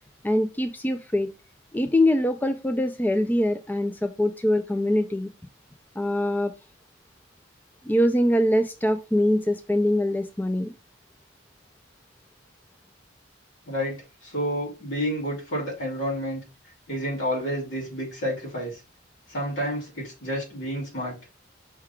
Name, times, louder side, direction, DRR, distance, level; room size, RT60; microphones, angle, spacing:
voice 1, 0.2-1.3 1.7-5.3 6.0-6.5 7.8-10.7, left 1 dB, 10° left, 7 dB, 0.3 m, -23 dB
voice 2, 14.2-16.4 16.9-18.8 19.3-21.2, equal, 70° left, -5 dB, 4.1 m, -29 dB
5.6 x 3.9 x 4.4 m, 0.30 s
head